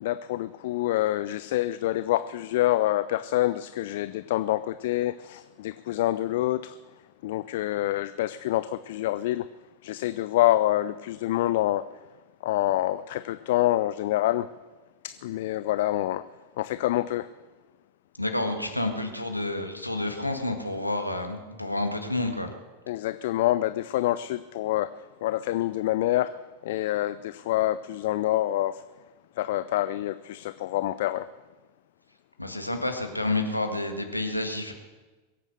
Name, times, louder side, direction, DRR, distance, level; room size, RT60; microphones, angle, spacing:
voice 1, 0.0-6.8 7.2-9.5 9.8-11.8 12.4-14.5 15.0-16.2 16.6-17.3 22.9-24.9 25.2-26.3 26.6-28.8 29.4-31.3, left 14 dB, 55° left, 14 dB, 0.4 m, -26 dB
voice 2, 18.2-22.5 32.4-34.7, left 2 dB, 85° left, 5 dB, 1.8 m, -29 dB
22.5 x 8.5 x 6.5 m, 1.2 s
figure-of-eight pair, 90°, 0 cm